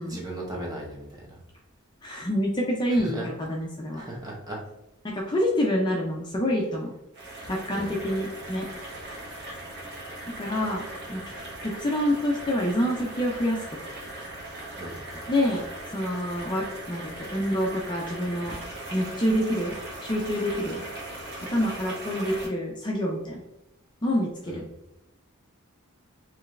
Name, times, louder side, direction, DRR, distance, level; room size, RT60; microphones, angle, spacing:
voice 1, 0.1-1.4 2.9-3.3 3.9-4.6 7.7-8.0 14.8-15.0 24.5-24.6, right 1 dB, 15° right, -2 dB, 1.0 m, -37 dB
voice 2, 2.0-4.0 5.0-6.9 7.5-8.7 10.4-11.3 11.6-13.6 15.1-18.6 18.9-19.7 20.0-20.8 21.5-23.4 24.0-24.6, equal, 20° left, -1 dB, 0.5 m, -27 dB
sound 1, 7.1-22.5, right 1 dB, 45° right, 1.1 m, -39 dB
4.8 x 3.2 x 2.5 m, 0.90 s
head